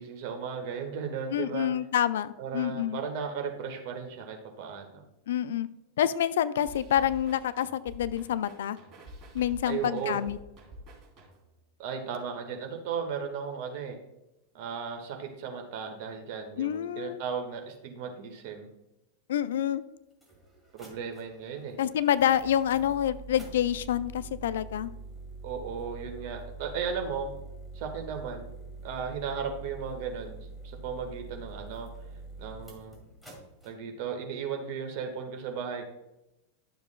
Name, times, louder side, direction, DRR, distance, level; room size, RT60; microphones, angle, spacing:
voice 1, 0.0-1.7 2.4-5.0 9.6-10.2 11.8-14.0 14.5-18.7 20.7-21.8 25.4-27.3 27.7-28.5 28.8-30.4 30.6-31.9 32.4-33.0 33.6-35.8, right 6 dB, 45° right, 3 dB, 1.5 m, -35 dB
voice 2, 1.3-3.0 5.3-5.7 6.0-8.8 9.3-10.4 16.6-17.2 19.3-19.8 21.8-24.9, left 10 dB, 60° left, 15 dB, 0.4 m, -27 dB
sound 1, 6.7-11.6, right 1 dB, 30° right, 3.1 m, -48 dB
sound 2, 19.5-19.6 20.1-33.7, right 3 dB, ahead, 2.3 m, -45 dB
11.5 x 6.9 x 2.2 m, 0.93 s
figure-of-eight pair, 90°, 0 cm